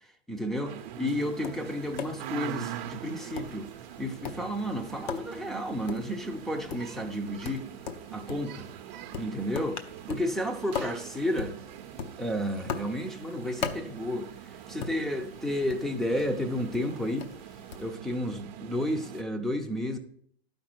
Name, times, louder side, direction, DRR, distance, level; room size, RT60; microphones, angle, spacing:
voice 1, 0.3-3.7 4.0-7.7 8.1-8.7 9.2-9.8 10.1-11.6 12.2-14.3 14.7-17.3 17.8-20.0, left 1 dB, ahead, 0.7 m, -32 dB
sound 1, 0.6-19.2, right 11 dB, 45° right, 0.8 m, -43 dB
Tap, 1.2-17.9, left 6 dB, 45° left, 0.9 m, -42 dB
12.0 x 5.2 x 4.5 m
hypercardioid pair, 135°, 31 cm